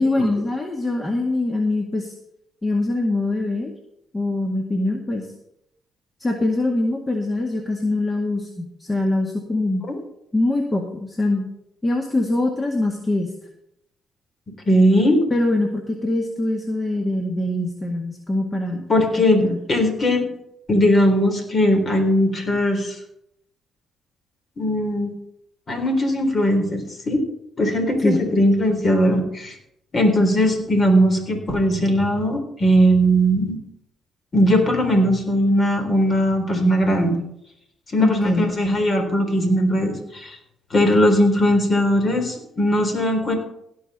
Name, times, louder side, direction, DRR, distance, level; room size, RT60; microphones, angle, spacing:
voice 1, 0.0-2.1 2.6-3.7 4.1-5.3 6.2-9.8 10.3-11.5 11.8-13.3 15.3-18.8 19.2-19.6 28.0-28.2 38.0-38.5, left 2 dB, 25° left, 2 dB, 2.0 m, -23 dB
voice 2, 14.7-15.2 18.9-20.3 20.7-23.0 24.6-25.1 25.7-27.2 27.6-29.6 29.9-33.6 34.3-37.1 37.9-40.4 40.7-43.4, equal, 45° left, 5 dB, 3.8 m, -19 dB
17.0 x 5.7 x 6.8 m, 0.78 s
hypercardioid pair, 50°, 0 cm